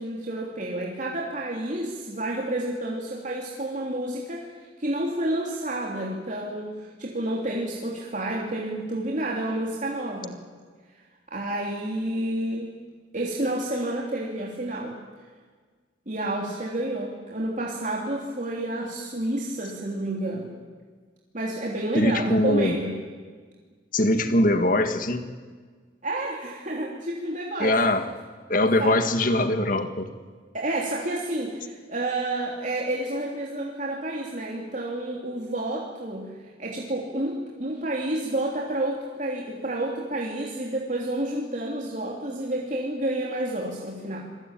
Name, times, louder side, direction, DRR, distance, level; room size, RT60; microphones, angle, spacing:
voice 1, 0.0-4.5 4.8-10.4 11.3-12.7 13.1-14.9 16.1-20.5 21.3-23.0 26.0-27.7 28.8-28.9 30.5-44.3, right 1 dB, 40° right, -2 dB, 3.2 m, -30 dB
voice 2, 21.9-22.8 23.9-25.3 27.6-28.1 28.5-30.1, left 1 dB, 45° left, 8 dB, 1.8 m, -22 dB
27.0 x 21.0 x 9.1 m, 1.5 s
head